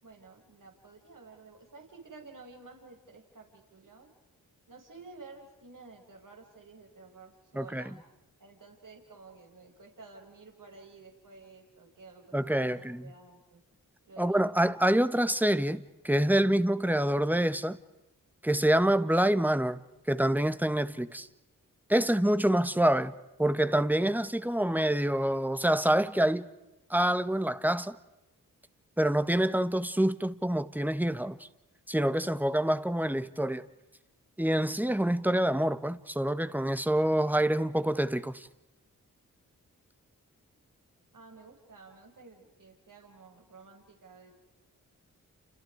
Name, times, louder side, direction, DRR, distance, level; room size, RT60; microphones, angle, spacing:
voice 1, 0.0-4.1 4.7-8.0 8.4-13.6 14.1-14.4 41.1-44.3, right 3 dB, 65° right, 5.6 m, -52 dB
voice 2, 7.5-8.0 12.3-13.1 14.2-17.8 18.4-19.8 20.1-21.3 21.9-23.1 23.4-26.5 26.9-28.0 29.0-31.5 31.9-33.7 34.4-38.5, right 1 dB, 5° right, 1.7 m, -26 dB
29.5 x 28.5 x 4.9 m
cardioid pair, 40°, 35 cm